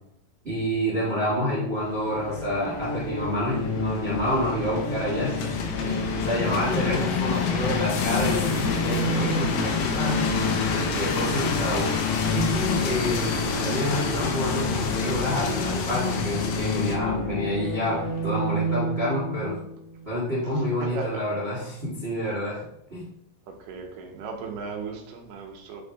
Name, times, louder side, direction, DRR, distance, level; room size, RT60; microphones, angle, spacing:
voice 1, 0.4-10.3 10.7-11.9 12.3-19.5 20.0-22.6 22.9-23.0, equal, 45° right, -7 dB, 0.7 m, -28 dB
sound 1, 1.8-17.0, left 5 dB, 85° left, 2.7 m, -29 dB
sound 2, 2.1-20.7, left 3 dB, 65° left, 1.9 m, -30 dB
voice 2, 20.8-21.2 23.5-25.8, right 4 dB, 70° right, 2 dB, 2.4 m, -36 dB
8.9 x 3.3 x 3.3 m, 0.77 s
omnidirectional pair, 4.3 m